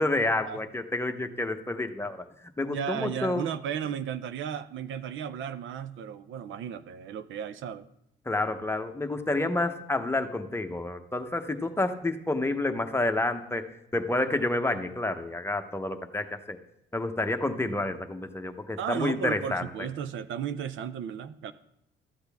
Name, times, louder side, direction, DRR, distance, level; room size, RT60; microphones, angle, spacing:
voice 1, 0.0-2.2 2.6-3.4 8.3-16.6 16.9-19.9, left 2 dB, 10° left, 7 dB, 0.9 m, -29 dB
voice 2, 2.7-7.9 18.8-21.5, right 8 dB, 75° right, 12 dB, 0.6 m, -34 dB
12.5 x 8.0 x 3.5 m, 0.80 s
cardioid pair, 90°, 20 cm